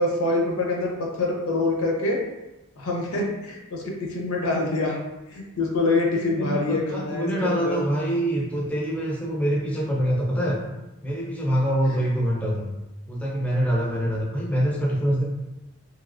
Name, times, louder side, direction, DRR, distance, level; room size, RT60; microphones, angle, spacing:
voice 1, 0.0-2.2 2.8-5.0 5.3-7.8 11.9-12.0, left 2 dB, 75° left, -1 dB, 0.6 m, -25 dB
voice 2, 6.4-10.6 11.0-12.7 13.1-15.2, equal, 5° left, -4 dB, 0.4 m, -25 dB
3.0 x 2.8 x 2.5 m, 1.0 s
head